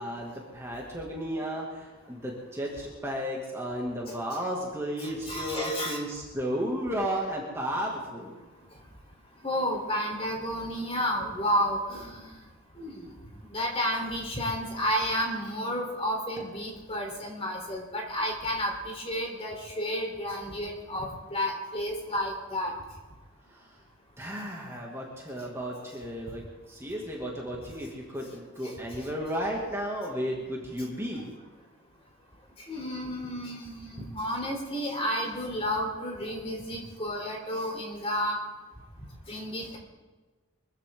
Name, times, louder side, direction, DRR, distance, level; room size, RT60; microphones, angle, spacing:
voice 1, 0.0-8.4 24.2-31.3, equal, 10° right, -2 dB, 2.4 m, -33 dB
voice 2, 5.0-6.0 9.4-12.4 12.8-13.1 13.5-22.7 28.6-28.7 32.7-38.4 39.3-39.8, equal, 30° left, 1 dB, 3.9 m, -31 dB
24.5 x 15.0 x 3.8 m, 1.3 s
head